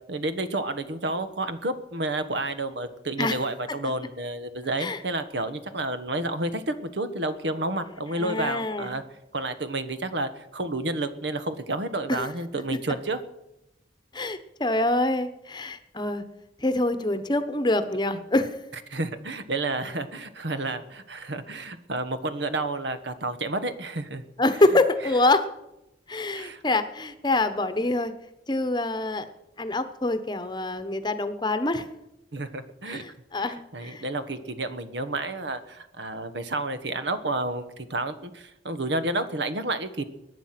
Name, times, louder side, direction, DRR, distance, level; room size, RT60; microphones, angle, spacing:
voice 1, 0.1-9.0 9.3-13.2 18.9-24.2 26.3-26.6 32.3-33.0 33.4-40.0, right 2 dB, 75° right, 11 dB, 1.3 m, -30 dB
voice 2, 8.1-9.0 12.1-12.3 14.1-16.2 16.6-18.6 24.4-25.5 26.1-28.1 28.5-29.3 29.6-31.9 32.9-34.0, left 2 dB, 25° left, 11 dB, 1.0 m, -25 dB
22.5 x 9.6 x 5.9 m, 0.90 s
head